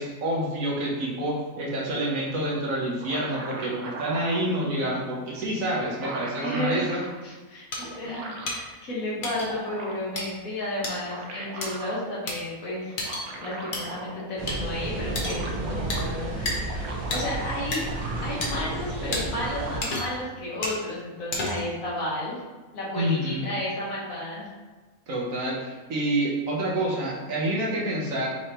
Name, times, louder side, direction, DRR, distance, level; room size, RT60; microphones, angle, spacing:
voice 1, 0.0-7.0 22.9-23.5 25.1-28.3, right 1 dB, 70° right, -3 dB, 1.3 m, -28 dB
sound 1, 2.8-4.5 5.4-5.5 5.8-7.1 7.8-8.6 9.2-10.2 10.8-12.0 12.9-14.4 14.7-14.8 15.0-16.1 16.5-18.7 19.0-20.0, right 2 dB, 85° right, 1.2 m, -39 dB
voice 2, 6.4-6.9 7.2-13.0 13.4-17.8 18.2-22.4 22.7-24.5, left 1 dB, 70° left, -7 dB, 1.8 m, -32 dB
sound 2, 7.7-7.8 8.5-8.6 9.2-9.5 10.2-10.3 10.8-11.0 11.6-11.7 12.3-12.4 13.0-13.2 13.7-13.8 14.5-14.6 15.2-15.4 15.9-16.0 16.5-16.6 17.1-17.2 17.7-17.8 18.4-18.5 19.1-19.2 19.8-20.2 20.6-20.8 21.3-21.7, left 2 dB, 45° left, 0.8 m, -30 dB
sound 3, 14.4-19.8, right 2 dB, 40° right, 0.7 m, -32 dB
5.6 x 3.1 x 2.9 m, 1.2 s
omnidirectional pair, 1.5 m